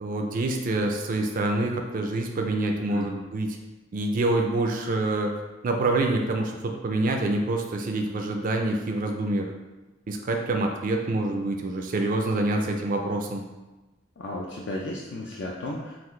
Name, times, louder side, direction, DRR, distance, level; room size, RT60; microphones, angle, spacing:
voice 1, 0.0-3.6 3.9-9.5 10.1-13.4, right 2 dB, 45° right, 2 dB, 0.4 m, -26 dB
voice 2, 14.2-16.0, left 1 dB, 60° left, -2 dB, 0.5 m, -34 dB
5.9 x 2.4 x 3.1 m, 1.1 s
head